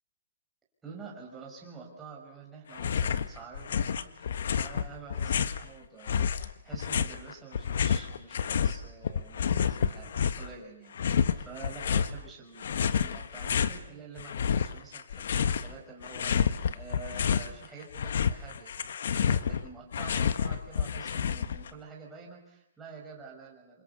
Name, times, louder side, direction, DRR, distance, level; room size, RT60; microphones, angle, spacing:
voice 1, 0.8-18.8 19.1-23.8, right 5 dB, 10° right, -3 dB, 5.8 m, -48 dB
sound 1, 2.7-3.3 3.5-5.6 6.1-8.8 9.0-10.5 11.0-12.1 12.6-13.8 14.2-15.7 16.0-17.5 17.8-21.7, left 7 dB, 60° left, 1.4 m, -29 dB
27.5 x 27.5 x 6.9 m, 0.81 s
hypercardioid pair, 165°, 0 cm